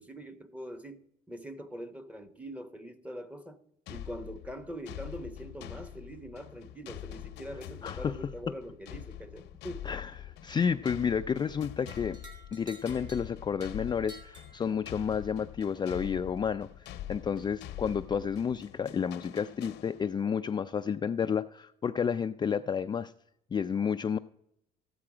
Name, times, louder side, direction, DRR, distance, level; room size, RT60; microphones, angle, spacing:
voice 1, 0.0-3.6 3.9-10.0, equal, 10° right, 1.0 m, -43 dB
sound 1, 3.9-20.3, left 12 dB, 80° left, 0.8 m, -45 dB
voice 2, 7.8-8.1 9.9-12.2 12.5-23.1 23.5-24.2, left 7 dB, 25° left, 0.4 m, -31 dB
sound 2, 11.9-15.2, right 1 dB, 25° right, 3.3 m, -53 dB
13.5 x 8.7 x 4.9 m
cardioid pair, 110°, 17 cm